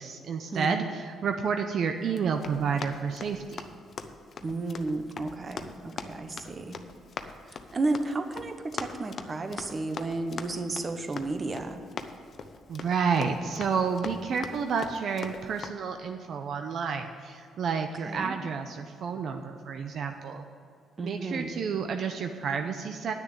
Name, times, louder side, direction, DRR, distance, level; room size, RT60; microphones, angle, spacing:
voice 1, 0.0-3.6 12.7-20.4 21.0-23.1, right 6 dB, 65° right, 5 dB, 0.6 m, -30 dB
voice 2, 0.5-0.9 4.4-6.8 7.4-11.8 18.0-18.4 21.0-21.6, right 2 dB, 35° right, 7 dB, 1.0 m, -33 dB
Run, 2.1-15.7, left 5 dB, 50° left, 0.7 m, -42 dB
10.0 x 6.7 x 8.4 m, 2.3 s
cardioid pair, 90°, 0 cm